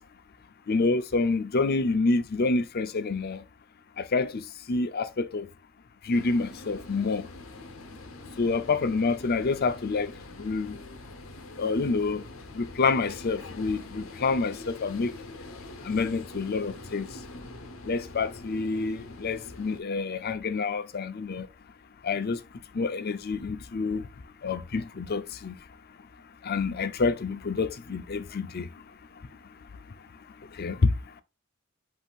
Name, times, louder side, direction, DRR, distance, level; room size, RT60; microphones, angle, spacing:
voice 1, 0.7-3.4 4.0-4.4 4.7-5.5 6.1-7.3 8.4-10.1 10.4-10.8 11.6-12.2 12.6-15.1 15.8-17.1 17.9-21.5 22.0-22.4 22.7-24.0 24.4-25.5 26.4-28.7 30.6-30.9, left 4 dB, 50° left, 0.5 m, -27 dB
sound 1, 6.1-19.8, left 2 dB, 90° left, 1.0 m, -44 dB
8.0 x 2.8 x 2.4 m
head